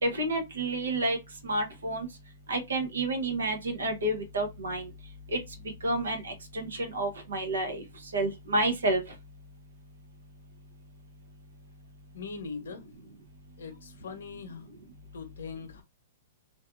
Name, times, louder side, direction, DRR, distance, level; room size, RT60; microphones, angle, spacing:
voice 1, 0.0-1.2 1.4-2.1 2.5-4.9 5.3-5.4 5.8-7.8 8.1-9.0, right 2 dB, 85° right, 0.7 m, -29 dB
voice 2, 12.1-12.8 13.6-14.7 15.1-15.8, left 5 dB, 75° left, 0.7 m, -41 dB
2.6 x 2.4 x 2.4 m
hypercardioid pair, 130°, 0 cm